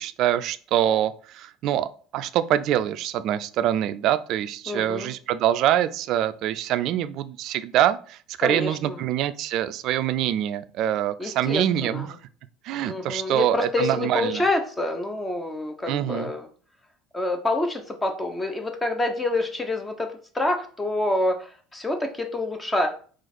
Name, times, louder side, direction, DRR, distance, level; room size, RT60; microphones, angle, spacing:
voice 1, 0.0-12.2 12.6-14.4 15.9-16.3, right 11 dB, 55° right, 14 dB, 0.3 m, -25 dB
voice 2, 4.7-5.1 8.4-9.0 11.2-12.1 12.8-16.5 17.1-22.9, left 2 dB, 20° left, 4 dB, 0.7 m, -27 dB
3.9 x 2.5 x 4.2 m, 0.43 s
hypercardioid pair, 65°, 0 cm